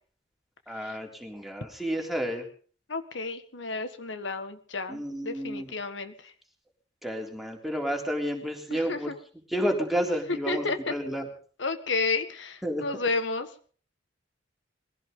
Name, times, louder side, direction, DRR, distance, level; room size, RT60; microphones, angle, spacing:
voice 1, 0.7-2.4 4.9-5.7 7.0-9.1 9.5-11.2 12.6-12.8, equal, ahead, 2 dB, 3.5 m, -31 dB
voice 2, 2.9-6.3 8.7-9.2 10.3-10.9 11.6-13.5, left 3 dB, 80° left, 9 dB, 1.7 m, -31 dB
22.5 x 16.5 x 3.9 m, 0.43 s
head